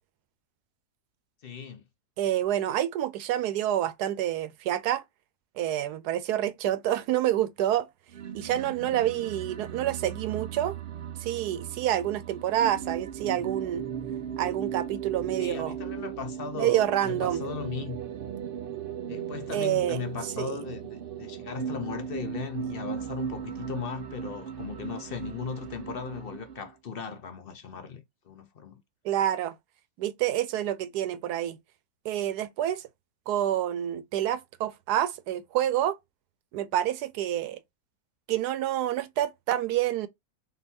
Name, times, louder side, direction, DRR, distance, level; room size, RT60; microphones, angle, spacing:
voice 1, 1.4-1.8 15.4-18.0 19.1-28.8, left 6 dB, 50° left, 0.7 m, -37 dB
voice 2, 2.2-5.0 5.6-7.9 8.3-10.8 11.2-13.8 14.4-15.7 16.6-17.4 19.5-20.0 20.4-20.6 29.0-29.6 30.0-31.6 32.0-32.9 33.3-36.0 36.5-37.6 38.3-40.1, right 12 dB, 80° right, 1.2 m, -28 dB
sound 1, 8.1-26.7, right 9 dB, 60° right, 0.6 m, -37 dB
4.0 x 3.9 x 2.7 m
omnidirectional pair, 1.7 m